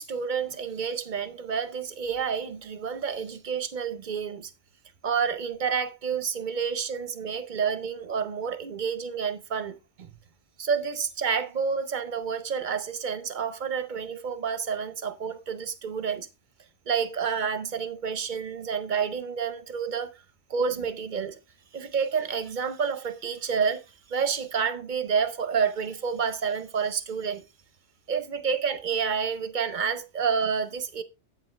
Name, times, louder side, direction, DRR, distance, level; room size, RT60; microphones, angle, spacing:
voice 1, 0.0-4.5 5.0-10.1 10.6-16.3 16.9-20.2 20.5-21.4 21.7-23.8 24.1-27.4 28.1-31.0, right 6 dB, 45° right, 0.7 m, -29 dB
8.1 x 7.4 x 3.2 m
omnidirectional pair, 1.3 m